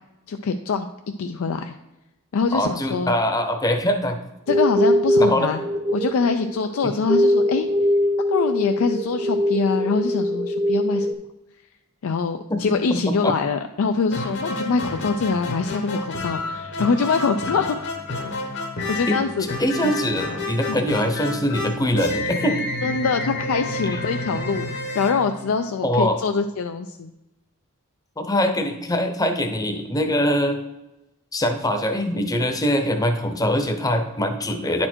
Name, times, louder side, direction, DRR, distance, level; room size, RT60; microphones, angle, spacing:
voice 1, 0.3-0.9 1.2-1.8 2.3-3.1 4.5-5.7 5.9-7.7 8.2-11.1 12.0-17.9 18.9-19.5 19.8-19.9 20.7-20.9 22.8-24.7 24.9-27.1, left 5 dB, 75° left, 6 dB, 0.4 m, -24 dB
voice 2, 2.5-4.2 5.2-5.5 6.8-6.9 12.5-13.3 19.1-19.2 19.6-22.6 23.9-24.0 25.8-26.2 28.2-30.6 31.3-34.9, equal, 15° left, 6 dB, 0.7 m, -23 dB
sound 1, 4.5-11.1, equal, 35° right, 0.7 m, -21 dB
sound 2, 14.1-26.0, left 2 dB, 55° left, 1.1 m, -30 dB
9.7 x 4.3 x 4.5 m, 0.96 s
head